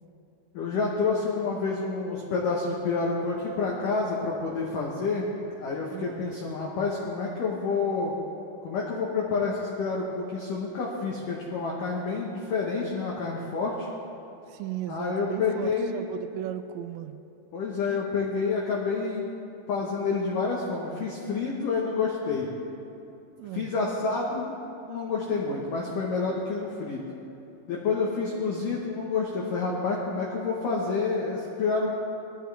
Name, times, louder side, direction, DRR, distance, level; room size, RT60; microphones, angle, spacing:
voice 1, 0.5-5.2 5.6-8.2 8.6-13.9 14.9-16.0 17.5-19.3 19.7-22.5 23.5-24.5 24.9-27.0 27.7-31.9, left 4 dB, 85° left, -3 dB, 1.8 m, -28 dB
voice 2, 5.9-6.2 14.5-17.2 23.4-23.7, right 12 dB, 85° right, 10 dB, 3.0 m, -36 dB
21.5 x 14.0 x 3.4 m, 2.9 s
omnidirectional pair, 5.9 m